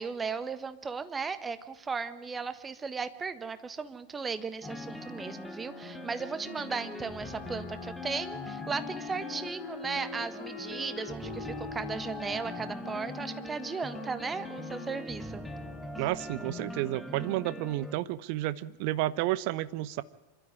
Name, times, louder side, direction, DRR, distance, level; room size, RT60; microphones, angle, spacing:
voice 1, 0.0-15.4, right 5 dB, 15° right, 12 dB, 1.4 m, -36 dB
sound 1, 4.6-17.9, left 1 dB, 5° left, 1.6 m, -42 dB
Wind instrument woodwind instrument, 4.9-16.9, left 6 dB, 60° left, 2.2 m, -45 dB
voice 2, 16.0-20.0, right 16 dB, 45° right, 17 dB, 1.0 m, -31 dB
26.0 x 13.0 x 9.7 m, 0.98 s
figure-of-eight pair, 90°, 0 cm